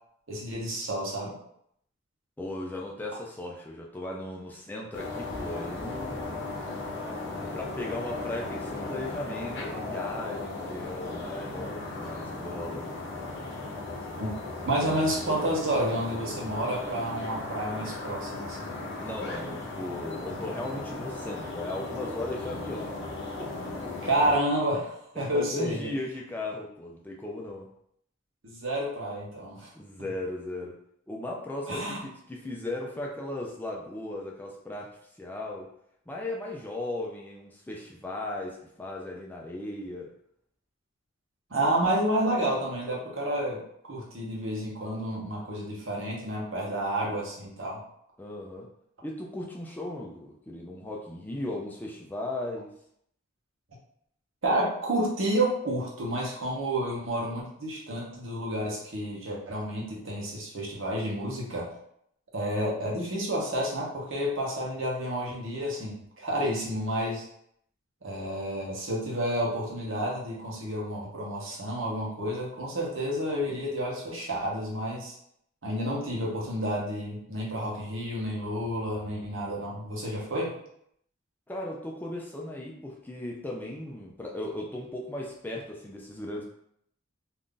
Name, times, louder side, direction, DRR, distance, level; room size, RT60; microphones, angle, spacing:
voice 1, 0.3-1.4 14.2-14.3 14.6-18.7 24.0-25.9 28.4-29.7 31.7-32.0 41.5-47.8 54.4-61.7 62.3-67.2 68.0-75.2 75.6-80.5, right 1 dB, 70° right, -3 dB, 0.9 m, -30 dB
voice 2, 2.4-6.2 7.3-12.9 19.0-23.0 23.4-23.5 25.2-27.7 29.7-30.8 31.1-34.9 35.2-35.7 36.1-40.1 48.2-48.7 49.0-52.7 81.5-86.4, left 1 dB, 10° left, -1 dB, 0.3 m, -37 dB
sound 1, 4.9-24.4, left 2 dB, 60° left, 0.7 m, -37 dB
2.6 x 2.4 x 3.6 m, 0.71 s
head